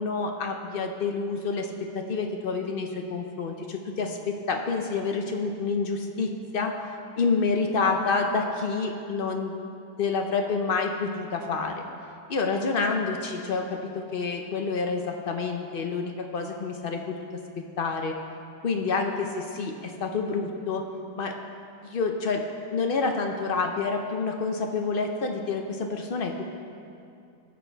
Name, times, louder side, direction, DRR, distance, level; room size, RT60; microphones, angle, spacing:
voice 1, 0.0-6.7 7.2-9.5 10.0-11.8 12.3-17.1 17.6-18.1 18.6-20.8 21.2-21.3 21.8-22.4 22.7-26.4, left 4 dB, 90° left, 3 dB, 0.4 m, -28 dB
19.0 x 6.3 x 4.5 m, 2.6 s
omnidirectional pair, 1.9 m